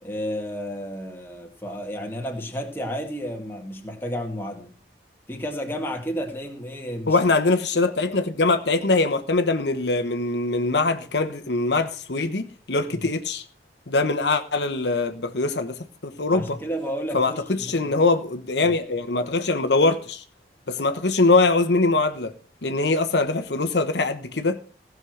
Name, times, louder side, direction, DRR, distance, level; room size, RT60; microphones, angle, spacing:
voice 1, 0.0-4.7 5.3-7.2 16.3-17.9 18.6-18.8, equal, 10° left, 2.1 m, -32 dB
voice 2, 7.1-13.4 13.9-16.6 17.1-20.2 20.7-22.3 22.6-24.6, left 3 dB, 80° left, 1.1 m, -22 dB
16.0 x 6.4 x 6.5 m
head